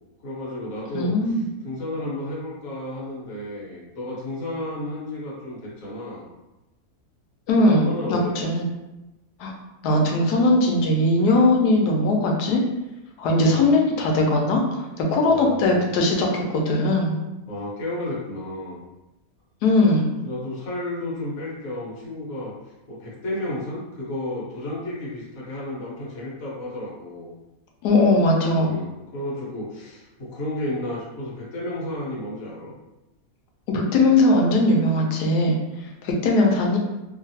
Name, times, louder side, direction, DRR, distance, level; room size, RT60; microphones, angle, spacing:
voice 1, 0.2-1.4 1.6-6.3 7.6-8.7 13.4-13.7 14.1-14.3 15.2-15.9 17.5-18.8 20.2-22.5 22.9-27.3 28.6-32.7, left 1 dB, 60° left, -6 dB, 1.3 m, -32 dB
voice 2, 0.9-1.4 7.5-8.7 9.4-9.5 9.8-12.6 13.2-14.6 15.0-17.2 19.6-20.1 27.8-28.7 33.7-35.6 36.0-36.8, left 2 dB, 85° left, 1 dB, 1.1 m, -19 dB
2.9 x 2.5 x 2.7 m, 0.99 s
omnidirectional pair, 1.7 m